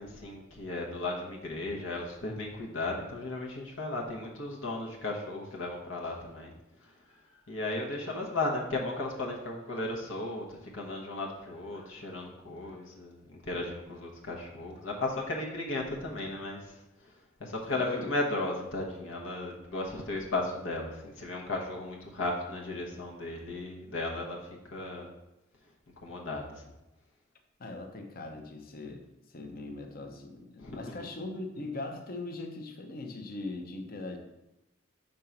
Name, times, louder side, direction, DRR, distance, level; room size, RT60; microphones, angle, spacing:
voice 1, 0.0-6.5 7.5-16.8 17.0-17.1 17.4-25.1 26.0-26.6 30.6-31.1, left 2 dB, 80° left, -1 dB, 1.1 m, -35 dB
voice 2, 17.7-18.1 27.6-34.2, left 2 dB, 50° left, 4 dB, 0.8 m, -40 dB
5.4 x 3.8 x 5.8 m, 0.96 s
head